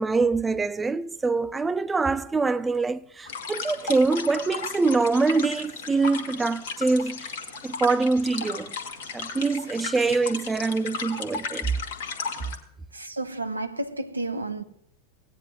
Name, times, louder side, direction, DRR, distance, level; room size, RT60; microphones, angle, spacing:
voice 1, 0.0-7.3 7.6-8.7 9.1-11.7, right 3 dB, 10° right, 0.4 m, -24 dB
sound 1, 3.3-12.6, left 5 dB, 55° left, 1.2 m, -35 dB
voice 2, 12.9-14.6, right 2 dB, 80° right, 0.7 m, -31 dB
17.0 x 9.3 x 2.4 m
figure-of-eight pair, 90°, 0 cm